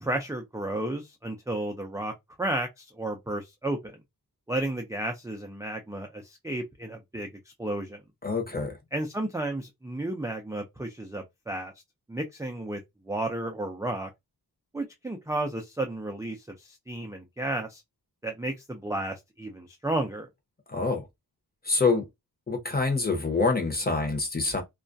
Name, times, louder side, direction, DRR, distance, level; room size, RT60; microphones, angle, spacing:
voice 1, 0.0-2.1 2.4-3.9 4.5-7.3 7.6-8.0 8.9-11.7 12.1-12.8 13.1-14.1 14.7-17.8 18.2-20.3, right 1 dB, 10° right, 0.4 m, -32 dB
voice 2, 8.2-8.7 20.7-21.0 21.6-22.1 22.5-24.6, left 4 dB, 25° left, 0.8 m, -26 dB
2.3 x 2.1 x 2.5 m
wide cardioid pair, 95°, 40 cm